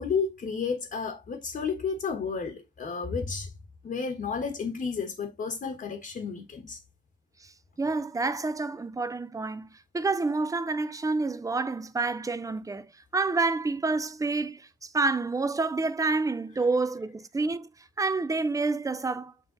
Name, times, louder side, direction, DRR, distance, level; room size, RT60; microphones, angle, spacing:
voice 1, 0.0-3.5 3.8-6.8, left 5 dB, 50° left, 1.4 m, -32 dB
voice 2, 7.8-17.7 18.0-19.3, right 3 dB, 15° right, 0.6 m, -28 dB
9.3 x 3.8 x 3.9 m
wide cardioid pair, 150°, 19 cm